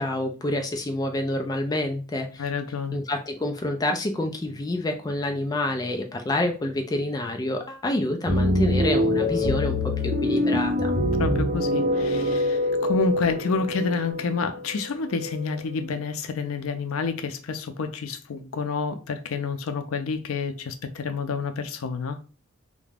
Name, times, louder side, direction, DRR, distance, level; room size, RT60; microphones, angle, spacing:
voice 1, 0.0-2.5 2.9-10.9, left 1 dB, 20° left, 0.3 m, -28 dB
voice 2, 2.4-3.0 11.2-22.2, left 4 dB, 90° left, 0.4 m, -29 dB
sound 1, 8.3-15.7, left 1 dB, 40° right, 0.6 m, -25 dB
2.4 x 2.1 x 3.2 m
head